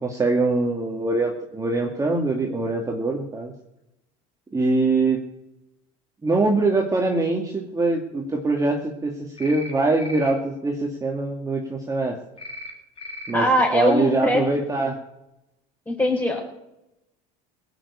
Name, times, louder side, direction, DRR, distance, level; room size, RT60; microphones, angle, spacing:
voice 1, 0.0-3.5 4.5-5.2 6.2-12.2 13.3-13.5 13.7-15.0, right 3 dB, 15° right, 0 dB, 2.2 m, -23 dB
sound 1, 9.4-9.7 10.0-10.3 12.4-12.7 13.0-13.3, equal, 30° left, 3.5 m, -37 dB
voice 2, 13.3-14.4 15.9-16.4, left 1 dB, 10° left, -5 dB, 4.7 m, -21 dB
17.5 x 7.2 x 8.6 m, 0.89 s
supercardioid pair, 100°, 19 cm